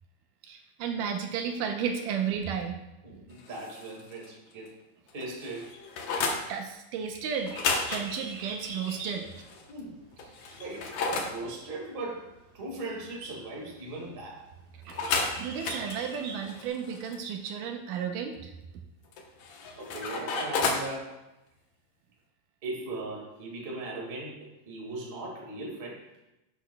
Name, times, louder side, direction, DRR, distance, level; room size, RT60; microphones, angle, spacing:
voice 1, 0.4-2.8 6.1-6.2 6.5-7.5 7.9-9.4 10.5-10.6 14.9-15.0 15.4-18.5, right 7 dB, 80° right, 5 dB, 2.2 m, -33 dB
voice 2, 3.0-4.7 5.1-5.7 9.7-14.5 19.8-21.2 22.6-26.1, right 2 dB, 25° right, -2 dB, 1.1 m, -39 dB
sound 1, 3.4-4.3 4.6-4.7 5.1-6.4 7.4-9.6 10.2-11.3 14.9-17.2 19.1-20.9, left 4 dB, 65° left, 2.0 m, -33 dB
Bird, 7.1-16.7, right 3 dB, 60° right, 2.2 m, -45 dB
12.0 x 8.3 x 2.3 m, 0.95 s
omnidirectional pair, 3.9 m